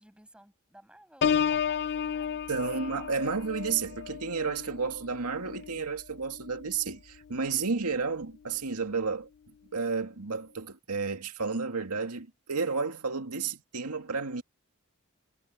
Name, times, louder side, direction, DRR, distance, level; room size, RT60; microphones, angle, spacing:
voice 1, 0.0-3.0, right 1 dB, 5° right, 6.1 m, -57 dB
Piano, 1.2-6.8 7.3-7.6, left 7 dB, 50° left, 0.4 m, -33 dB
voice 2, 2.5-9.3 9.7-14.4, right 4 dB, 85° right, 2.2 m, -32 dB
head